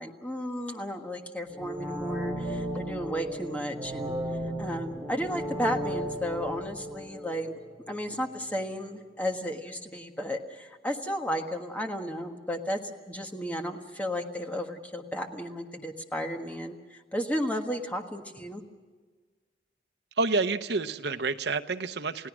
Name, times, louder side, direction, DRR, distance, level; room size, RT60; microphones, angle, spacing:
voice 1, 0.0-4.2 4.6-7.5 7.9-12.8 13.1-18.6, equal, 10° left, 3 dB, 1.4 m, -33 dB
sound 1, 1.5-8.3 8.7-8.8, equal, 10° right, 3.6 m, -35 dB
voice 2, 20.2-22.3, right 3 dB, 75° right, 10 dB, 0.8 m, -28 dB
29.0 x 17.0 x 6.2 m, 1.4 s
head